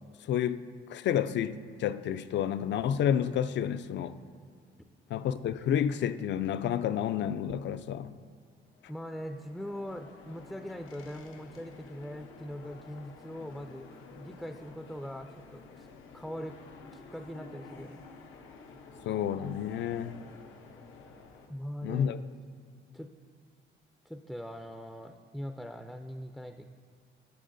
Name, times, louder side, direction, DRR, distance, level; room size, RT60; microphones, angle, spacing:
voice 1, 0.3-0.6 0.9-4.2 5.1-8.2 19.1-20.2 21.8-22.2, left 9 dB, 65° left, 13 dB, 0.4 m, -30 dB
sound 1, 8.7-21.5, left 4 dB, 90° left, 0.8 m, -51 dB
voice 2, 8.9-15.9 16.1-16.6 16.9-18.0 21.5-22.1 22.9-23.1 24.0-26.7, equal, ahead, 6 dB, 0.4 m, -41 dB
10.0 x 7.8 x 2.6 m, 2.2 s
cardioid pair, 90°, 20 cm